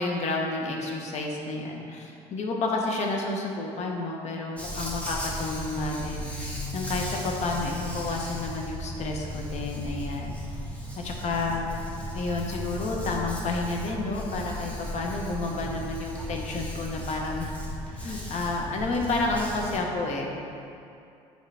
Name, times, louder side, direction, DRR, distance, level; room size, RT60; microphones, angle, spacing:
voice 1, 0.0-10.4 11.0-11.7 12.1-17.5 17.9-20.3, left 2 dB, 60° left, 0 dB, 0.9 m, -30 dB
Dog, 4.6-19.8, equal, 10° left, 1.1 m, -36 dB
6.7 x 4.7 x 3.4 m, 2.6 s
supercardioid pair, 80°, 13 cm